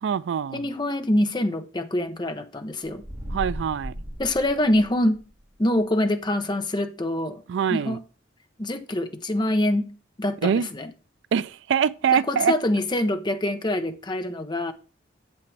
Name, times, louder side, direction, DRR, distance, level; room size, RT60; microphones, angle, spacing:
voice 1, 0.0-0.6 3.3-3.9 7.5-8.0 10.4-10.7 11.3-12.5, right 7 dB, 75° right, 0.3 m, -24 dB
voice 2, 0.5-3.0 4.2-5.2 5.6-7.4 7.7-8.0 8.6-9.9 10.2-10.9 12.1-14.7, left 1 dB, 25° left, 0.7 m, -25 dB
sound 1, 2.9-5.3, equal, 35° right, 2.0 m, -36 dB
8.3 x 7.5 x 3.3 m
head